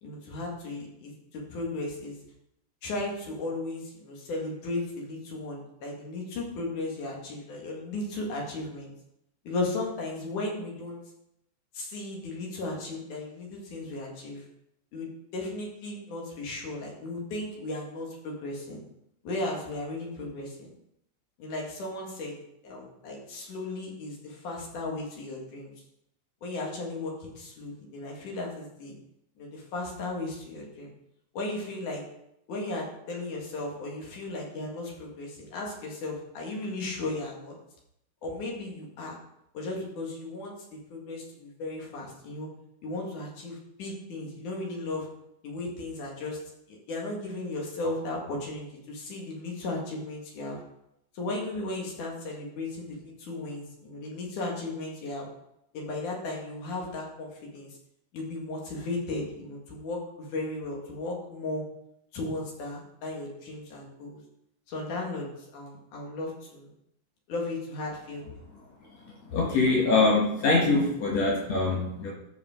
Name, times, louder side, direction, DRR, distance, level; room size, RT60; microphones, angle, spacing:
voice 1, 0.0-2.2 2.8-8.9 9.5-11.0 11.7-14.4 14.9-18.8 19.2-20.7 21.4-22.4 22.6-25.7 26.4-28.9 29.4-30.9 31.3-32.0 32.5-37.5 38.2-39.2 39.5-42.5 42.8-45.1 45.4-46.4 46.7-50.6 51.1-55.3 55.7-57.7 58.1-61.6 62.1-64.2 64.7-66.7 67.3-68.2, left 2 dB, 85° left, -1 dB, 3.6 m, -35 dB
voice 2, 69.2-72.1, left 3 dB, 60° left, -4 dB, 2.8 m, -23 dB
13.0 x 6.9 x 3.8 m, 0.80 s
omnidirectional pair, 3.5 m